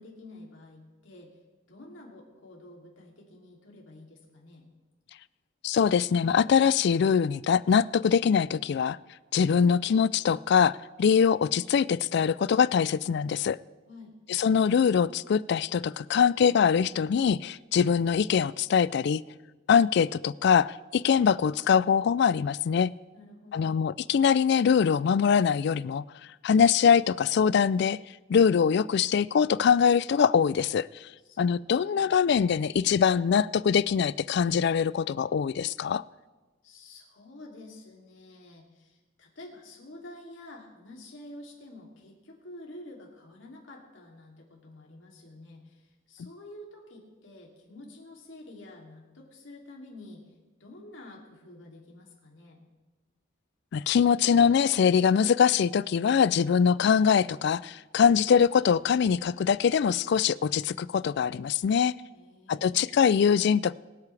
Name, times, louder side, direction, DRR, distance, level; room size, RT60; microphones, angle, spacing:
voice 1, 0.0-1.4 1.7-4.6 13.9-14.2 23.1-23.7 31.2-31.9 36.6-50.3 50.6-52.6 62.1-62.8, left 1 dB, 75° left, 2.8 m, -49 dB
voice 2, 5.6-9.0 9.3-13.6 14.3-19.2 19.7-22.9 23.5-26.0 26.4-28.0 28.3-31.1 31.4-36.0 53.7-61.9 62.5-63.7, left 7 dB, 60° left, 0.3 m, -23 dB
23.5 x 8.4 x 3.3 m
head